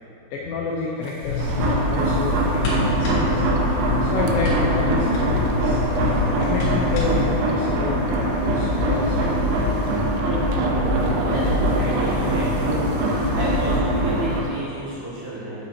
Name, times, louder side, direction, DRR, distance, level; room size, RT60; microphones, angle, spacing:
voice 1, 0.3-5.8 6.3-9.7, left 4 dB, 80° left, -3 dB, 2.7 m, -30 dB
sound 1, 1.0-13.8, right 4 dB, 90° right, 2.5 m, -38 dB
sound 2, 1.2-7.3, left 2 dB, 60° left, 3.7 m, -27 dB
sound 3, 1.4-14.4, equal, 75° right, 3.0 m, -22 dB
voice 2, 11.1-12.9 13.3-15.6, right 1 dB, 55° right, -13 dB, 2.0 m, -31 dB
9.7 x 8.8 x 2.8 m, 2.8 s
omnidirectional pair, 5.9 m